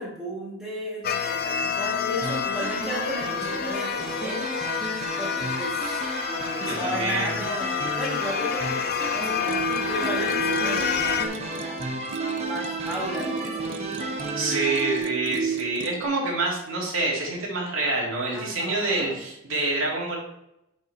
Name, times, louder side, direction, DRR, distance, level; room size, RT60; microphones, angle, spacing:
voice 1, 0.0-4.5 5.2-11.8 12.4-13.7 18.3-19.2, equal, 5° right, -5 dB, 2.1 m, -34 dB
sound 1, 1.0-11.3, left 7 dB, 50° left, 0.5 m, -29 dB
sound 2, 2.2-15.0, right 1 dB, 30° right, 1.1 m, -33 dB
voice 2, 6.6-7.3 14.4-20.2, right 2 dB, 80° right, -3 dB, 2.1 m, -27 dB
sound 3, 9.5-16.1, right 6 dB, 60° right, 0.6 m, -32 dB
6.2 x 5.6 x 4.1 m, 0.83 s
head